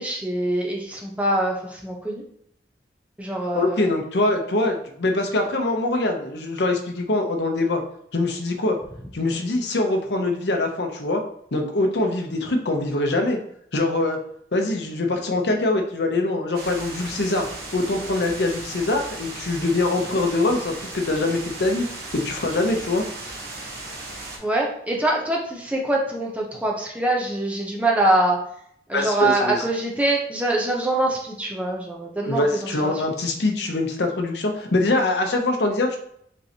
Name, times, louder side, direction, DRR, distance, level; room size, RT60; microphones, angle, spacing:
voice 1, 0.0-2.2 3.2-3.9 24.4-28.4 28.9-33.0, right 2 dB, 10° right, -2 dB, 0.7 m, -24 dB
voice 2, 3.5-7.8 8.1-8.8 9.1-11.2 11.5-13.4 13.7-14.2 14.5-17.5 17.7-21.9 22.1-23.1 28.9-29.6 32.3-36.0, left 2 dB, 80° left, 3 dB, 0.8 m, -23 dB
sound 1, 16.5-24.4, right 2 dB, 55° right, 1.2 m, -36 dB
5.2 x 3.3 x 2.9 m, 0.68 s
head